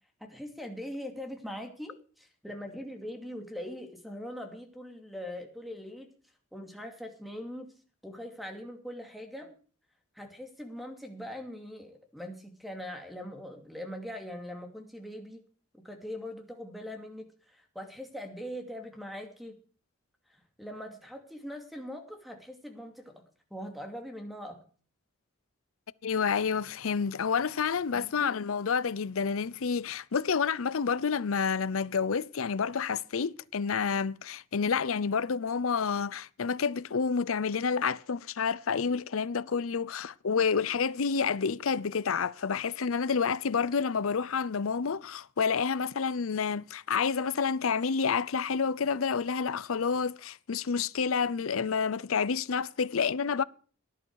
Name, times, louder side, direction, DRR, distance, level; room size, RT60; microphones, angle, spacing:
voice 1, 0.2-6.1 6.5-7.7 8.0-9.5 10.1-15.4 15.7-19.5 20.3-23.1 23.5-24.6 27.9-28.4, equal, ahead, 2.5 m, -42 dB
voice 2, 26.0-53.4, left 6 dB, 85° left, 0.6 m, -29 dB
18.0 x 11.0 x 4.8 m
head